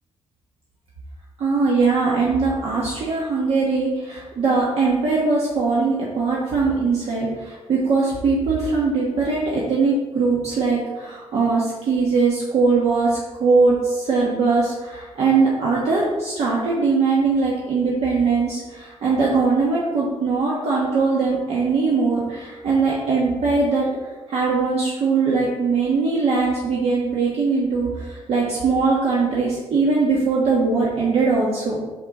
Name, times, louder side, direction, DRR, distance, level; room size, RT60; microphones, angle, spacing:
voice 1, 1.4-23.9 24.3-31.8, right 4 dB, 65° right, -5 dB, 1.3 m, -21 dB
5.6 x 5.5 x 3.8 m, 1.2 s
cardioid pair, 100°, 11 cm